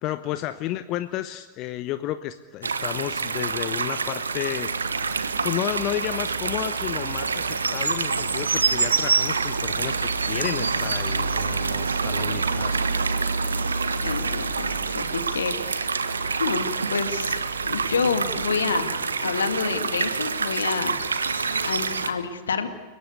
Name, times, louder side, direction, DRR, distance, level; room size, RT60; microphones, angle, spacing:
voice 1, 0.0-4.7 5.4-12.9, left 14 dB, 40° left, 12 dB, 0.8 m, -32 dB
sound 1, 2.6-22.1, right 4 dB, 75° right, 1.4 m, -26 dB
voice 2, 12.7-15.9 16.4-18.9 19.2-21.0 21.6-22.7, left 5 dB, 70° left, 8 dB, 2.2 m, -29 dB
29.5 x 18.0 x 8.2 m, 1.5 s
figure-of-eight pair, 90°, 0 cm